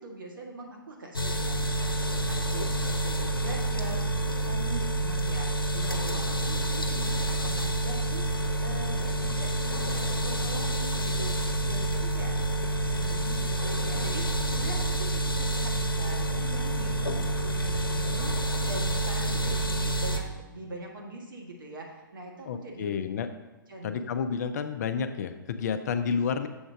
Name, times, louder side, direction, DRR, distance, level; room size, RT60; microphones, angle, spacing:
voice 1, 0.0-2.7 3.0-8.4 8.6-11.4 11.6-23.0 23.7-24.1, right 1 dB, 70° right, -1 dB, 1.7 m, -42 dB
sound 1, 1.1-20.2, right 2 dB, 90° left, 0.8 m, -28 dB
voice 2, 22.4-23.3 23.8-26.5, left 6 dB, 50° left, 8 dB, 0.5 m, -30 dB
7.1 x 5.1 x 3.6 m, 1.2 s
figure-of-eight pair, 115°, 11 cm